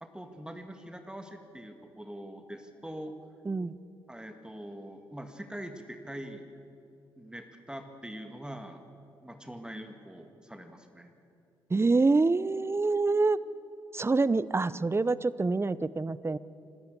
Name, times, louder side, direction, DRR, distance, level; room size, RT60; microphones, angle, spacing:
voice 1, 0.0-3.1 4.1-6.4 7.2-8.8 9.2-11.1, right 1 dB, 10° right, 6 dB, 2.1 m, -43 dB
voice 2, 11.7-13.4 13.9-16.4, right 3 dB, 25° right, 18 dB, 0.7 m, -26 dB
27.0 x 13.0 x 8.3 m, 2.7 s
hypercardioid pair, 50°, 11 cm